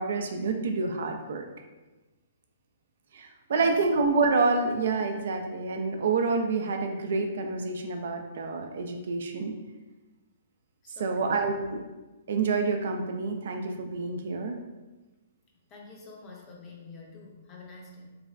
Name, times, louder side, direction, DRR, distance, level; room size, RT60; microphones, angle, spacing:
voice 1, 0.0-1.4 3.1-9.6 11.0-11.8 12.3-14.6, right 4 dB, 65° right, 4 dB, 0.3 m, -28 dB
voice 2, 3.5-4.0 10.8-11.4 15.7-18.2, left 3 dB, 30° left, -1 dB, 0.6 m, -47 dB
3.2 x 2.1 x 2.4 m, 1.1 s
hypercardioid pair, 125°, 0 cm